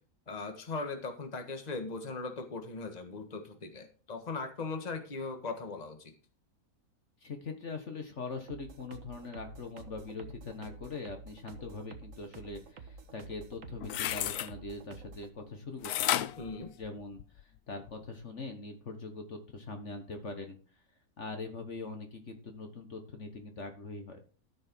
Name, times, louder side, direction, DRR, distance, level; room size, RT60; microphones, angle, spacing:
voice 1, 0.3-6.1 16.4-16.7, left 3 dB, 30° left, 5 dB, 1.6 m, -39 dB
voice 2, 7.2-16.3 16.8-20.6 21.2-24.2, left 3 dB, 55° left, 5 dB, 1.7 m, -42 dB
sound 1, 8.5-15.3, right 4 dB, 65° right, 1.5 m, -50 dB
sound 2, 13.6-14.5 15.8-17.4 17.9-18.0, left 12 dB, 85° left, 1.1 m, -32 dB
13.5 x 6.5 x 4.6 m, 0.37 s
omnidirectional pair, 1.5 m